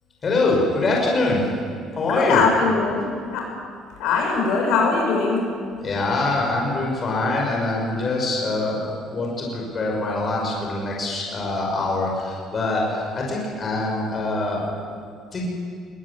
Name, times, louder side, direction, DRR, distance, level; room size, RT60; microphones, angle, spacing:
voice 1, 0.2-1.4 1.9-2.4 5.8-14.6 15.3-15.5, left 2 dB, 30° left, -2 dB, 5.9 m, -24 dB
voice 2, 2.1-3.4 4.0-5.4, left 4 dB, 80° left, 0 dB, 7.3 m, -21 dB
21.0 x 19.0 x 9.8 m, 2.2 s
cardioid pair, 145°, 0 cm